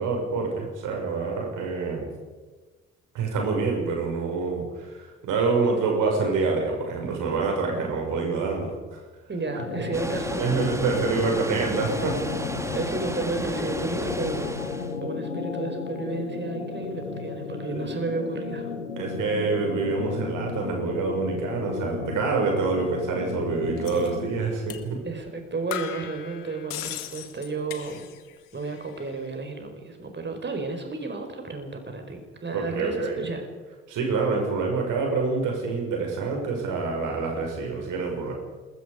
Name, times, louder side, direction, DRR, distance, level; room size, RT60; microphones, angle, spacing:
voice 1, 0.0-2.1 3.1-9.0 10.4-12.3 17.7-17.8 19.0-25.0 32.5-33.3 33.9-38.3, right 4 dB, 60° right, 1 dB, 6.5 m, -26 dB
voice 2, 9.3-10.9 12.7-14.5 15.0-18.7 25.0-28.1 28.5-33.5, right 3 dB, 30° right, 5 dB, 5.2 m, -32 dB
sound 1, 9.5-24.6, left 5 dB, 85° left, 1.2 m, -34 dB
Water, 9.9-15.0, right 1 dB, 10° right, 2.1 m, -33 dB
sound 2, 23.9-24.1 24.7-24.9 25.2-25.3 25.7-28.3 28.6-29.2, left 11 dB, 60° left, 2.0 m, -38 dB
27.5 x 21.5 x 5.2 m, 1.3 s
figure-of-eight pair, 45°, 36 cm